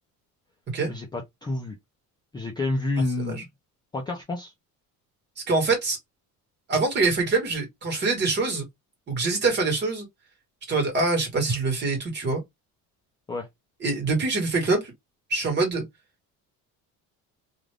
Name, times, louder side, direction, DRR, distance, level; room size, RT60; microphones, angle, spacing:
voice 1, 0.9-1.8 2.3-3.5 3.9-4.5 13.3-13.5, left 2 dB, 15° left, 0.4 m, -29 dB
voice 2, 5.5-6.0 6.7-8.7 9.1-10.1 10.7-12.4 13.8-14.9 15.3-15.8, right 3 dB, 30° right, 1.4 m, -24 dB
2.5 x 2.5 x 3.1 m
cardioid pair, 175°, 35 cm